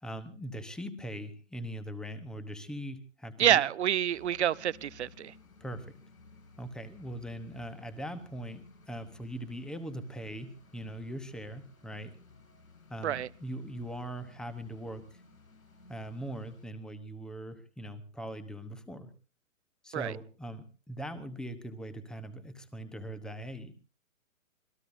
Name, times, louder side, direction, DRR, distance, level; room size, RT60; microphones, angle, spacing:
voice 1, 0.0-3.6 5.6-6.0 6.6-12.1 12.9-15.2 15.9-19.1 19.8-23.7, right 1 dB, ahead, 12 dB, 1.0 m, -41 dB
voice 2, 3.4-5.3 13.0-13.3 19.9-20.1, right 10 dB, 55° right, 20 dB, 0.7 m, -27 dB
sound 1, 4.1-16.7, left 3 dB, 85° left, 4.7 m, -57 dB
26.5 x 19.5 x 2.7 m, 0.37 s
hypercardioid pair, 135°, 40 cm